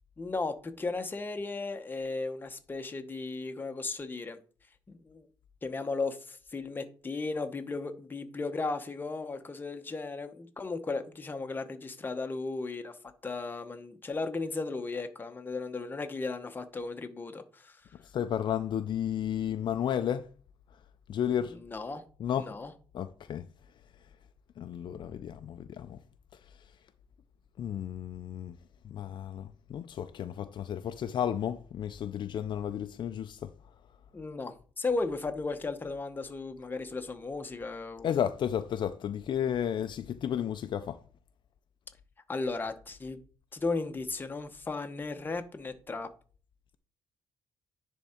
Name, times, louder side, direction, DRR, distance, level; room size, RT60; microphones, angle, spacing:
voice 1, 0.2-4.4 4.9-5.2 5.6-12.9 13.2-17.8 21.5-22.0 22.4-22.7 34.1-38.1 42.3-43.2 43.5-46.1, left 3 dB, 20° left, 0.8 m, -35 dB
voice 2, 18.1-20.3 21.1-21.5 22.2-22.5 22.9-23.4 24.6-26.0 27.6-28.6 28.8-33.5 38.0-41.0, left 9 dB, 55° left, 0.4 m, -32 dB
10.0 x 3.6 x 4.3 m
cardioid pair, 125°, 9 cm